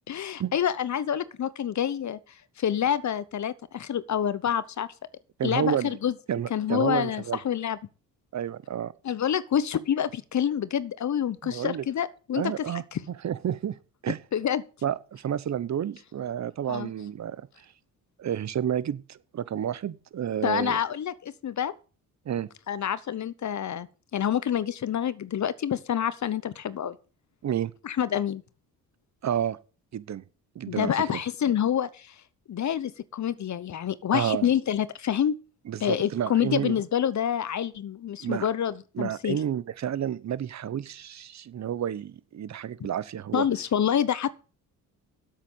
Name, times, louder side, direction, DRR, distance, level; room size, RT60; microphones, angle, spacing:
voice 1, 0.1-2.2 2.6-4.9 5.4-6.1 6.5-7.8 9.0-13.0 14.3-14.6 16.7-16.9 20.4-21.7 22.7-23.9 24.1-27.0 27.8-28.4 30.7-32.1 32.5-35.4 35.8-39.4 43.3-44.3, left 9 dB, 45° left, 0.9 m, -27 dB
voice 2, 5.4-5.9 6.3-7.4 8.3-8.9 11.4-11.8 12.4-12.8 13.2-13.8 14.0-14.2 14.8-17.5 18.2-20.8 22.3-22.5 27.4-27.7 29.2-29.6 29.9-30.2 30.5-30.9 34.1-34.5 35.7-36.8 38.2-38.5 38.9-43.4, right 9 dB, 45° right, 0.9 m, -30 dB
8.3 x 7.9 x 8.0 m
cardioid pair, 80°, 38 cm